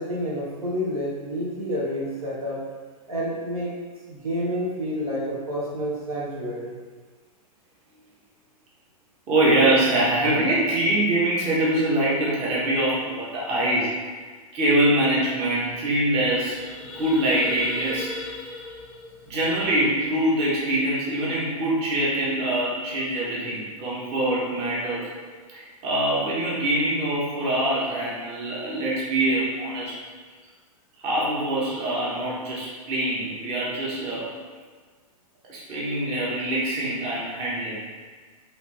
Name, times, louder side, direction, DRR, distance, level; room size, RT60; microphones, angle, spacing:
voice 1, 0.0-2.6 3.1-3.7 4.1-6.7, equal, 80° right, -5 dB, 1.0 m, -29 dB
voice 2, 9.3-13.9 14.5-16.6 17.0-18.1 19.3-25.1 25.5-30.0 31.0-34.3 35.5-37.8, right 1 dB, 35° right, -6 dB, 1.0 m, -24 dB
sound 1, 16.2-20.4, left 3 dB, 5° left, 0.7 m, -38 dB
3.2 x 2.7 x 3.2 m, 1.5 s
hypercardioid pair, 115°, 18 cm